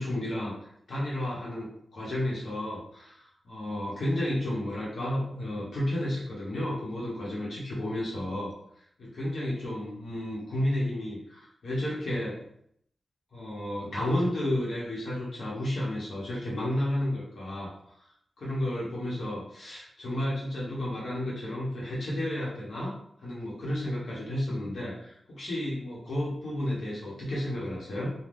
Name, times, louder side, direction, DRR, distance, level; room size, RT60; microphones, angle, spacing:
voice 1, 0.0-12.5 13.3-17.9 18.4-22.9 23.2-28.1, left 1 dB, 75° left, -6 dB, 1.0 m, -32 dB
3.3 x 2.2 x 2.5 m, 0.69 s
wide cardioid pair, 120°, 0 cm